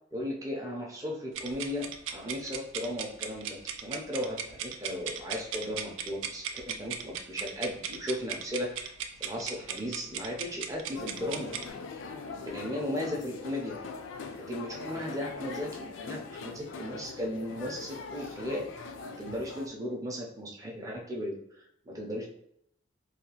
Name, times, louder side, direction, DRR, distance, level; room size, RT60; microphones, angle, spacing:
voice 1, 0.1-8.9 9.2-11.5 12.4-13.8 14.5-18.6 19.1-22.3, left 1 dB, 15° right, -1 dB, 0.4 m, -36 dB
sound 1, 1.3-11.7, right 7 dB, 80° right, 0.3 m, -38 dB
sound 2, 10.9-19.7, left 4 dB, 70° left, 0.3 m, -42 dB
2.7 x 2.3 x 2.8 m, 0.73 s
head